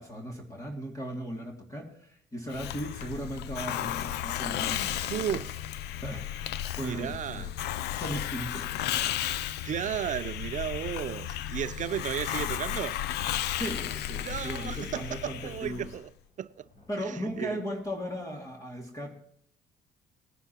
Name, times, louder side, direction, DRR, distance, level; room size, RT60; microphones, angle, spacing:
voice 1, 0.0-5.4 6.0-7.5 8.0-8.7 13.6-15.9 16.9-19.1, equal, 20° left, 2.7 m, -37 dB
Hiss, 2.5-16.0, left 12 dB, 80° left, 0.6 m, -34 dB
sound 1, 4.1-18.4, left 1 dB, 45° left, 6.5 m, -61 dB
voice 2, 5.0-5.5 6.8-7.5 9.6-13.0 14.2-16.1 16.4-16.7 17.4-17.6, right 10 dB, 45° right, 0.6 m, -34 dB
20.0 x 10.5 x 3.0 m
cardioid pair, 110°, 17 cm